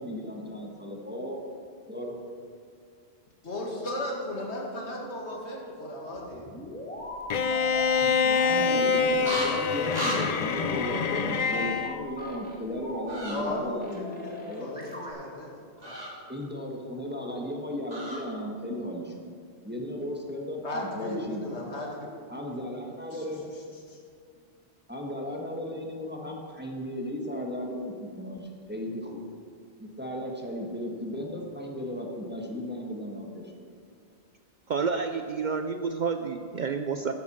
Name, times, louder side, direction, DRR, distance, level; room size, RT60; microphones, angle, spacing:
voice 1, 0.0-1.4 1.9-2.1 8.0-14.8 16.3-19.3 19.6-21.4 22.3-23.5 24.9-29.3 29.8-33.5, left 1 dB, 10° right, 0 dB, 1.2 m, -35 dB
voice 2, 3.4-6.5 13.3-16.0 20.6-22.1 23.1-23.2 23.9-24.0, left 1 dB, 80° left, -1 dB, 2.2 m, -36 dB
sound 1, 6.1-8.0 8.4-9.4 10.2-12.6 12.8-13.5 13.8-15.1, left 1 dB, 10° left, 1.8 m, -40 dB
Bowed string instrument, 7.3-12.0, left 5 dB, 50° left, 0.5 m, -25 dB
sound 2, 9.2-9.5 9.9-10.2 13.1-13.4 15.8-16.1 17.9-18.2, equal, 40° right, 2.2 m, -32 dB
voice 3, 34.7-37.1, right 5 dB, 55° right, 7 dB, 0.6 m, -29 dB
12.0 x 10.5 x 4.3 m, 2.2 s
omnidirectional pair, 1.1 m